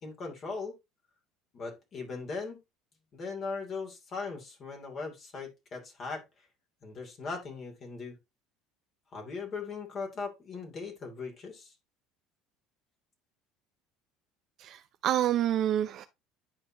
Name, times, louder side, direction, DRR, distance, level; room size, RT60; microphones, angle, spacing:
voice 1, 0.0-0.7 1.5-2.6 3.1-6.5 6.8-8.1 9.1-11.7, left 4 dB, 45° left, 2.9 m, -39 dB
voice 2, 14.6-16.0, right 11 dB, 60° right, 0.6 m, -28 dB
10.5 x 4.3 x 2.9 m
hypercardioid pair, 80°, 0 cm